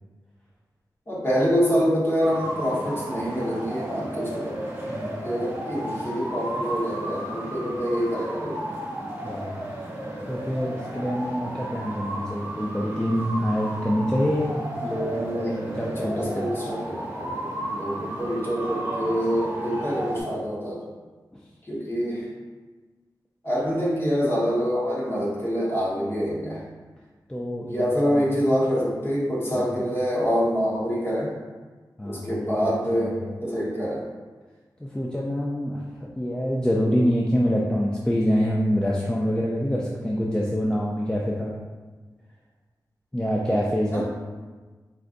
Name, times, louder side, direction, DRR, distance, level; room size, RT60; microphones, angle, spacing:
voice 1, 1.1-4.5 5.1-8.6 15.1-20.9 21.7-22.3 23.4-26.6 27.6-31.3 32.0-34.1 43.5-43.6 43.9-44.0, equal, 30° left, -6 dB, 1.3 m, -26 dB
sound 1, 2.2-20.2, right 1 dB, 25° right, 1.1 m, -33 dB
voice 2, 4.9-5.4 9.2-9.6 10.3-16.5 27.3-28.2 29.5-29.9 32.0-33.3 34.8-41.5 43.1-44.0, equal, 10° left, -4 dB, 0.4 m, -26 dB
4.4 x 3.8 x 2.5 m, 1.3 s
wide cardioid pair, 115°, 8 cm